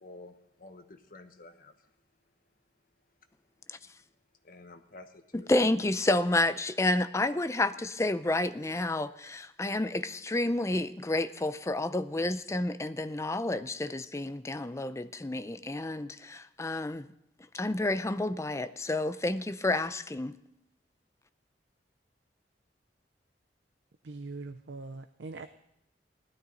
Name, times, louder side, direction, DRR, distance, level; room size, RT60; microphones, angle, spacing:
voice 1, 0.0-1.7 4.4-5.7, left 2 dB, 50° left, 7 dB, 1.1 m, -50 dB
voice 2, 5.3-17.1 17.5-20.4, left 2 dB, 15° left, 12 dB, 0.5 m, -30 dB
voice 3, 24.0-25.5, right 3 dB, 85° right, 9 dB, 0.6 m, -42 dB
16.5 x 12.5 x 3.9 m, 0.83 s
head